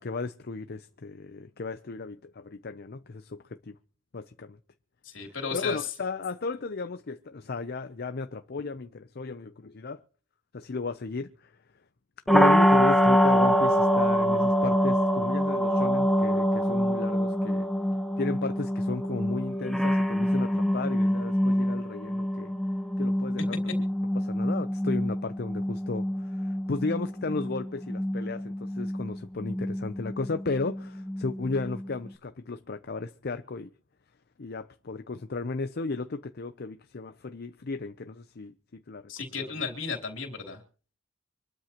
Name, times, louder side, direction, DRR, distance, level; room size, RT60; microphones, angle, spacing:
voice 1, 0.0-3.8 4.1-4.6 5.5-10.0 10.5-11.5 12.3-17.7 18.2-22.5 23.0-23.6 24.2-33.7 34.4-39.1 39.4-39.7, left 3 dB, 50° left, 0.6 m, -35 dB
voice 2, 5.0-5.9 39.1-40.6, left 5 dB, 70° left, 3.3 m, -34 dB
sound 1, 12.3-32.1, equal, ahead, 1.0 m, -25 dB
25.5 x 12.5 x 3.0 m
head